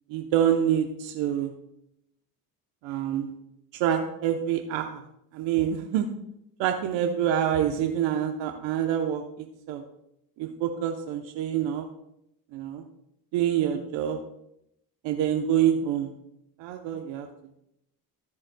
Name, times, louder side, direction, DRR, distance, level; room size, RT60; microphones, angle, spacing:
voice 1, 0.1-1.5 2.8-3.3 3.7-5.0 5.3-6.1 6.6-9.8 10.4-11.9 12.5-12.8 13.3-14.2 15.0-16.1 16.6-17.3, right 9 dB, 70° right, 4 dB, 1.0 m, -26 dB
14.5 x 9.9 x 2.3 m, 0.79 s
hypercardioid pair, 60°, 47 cm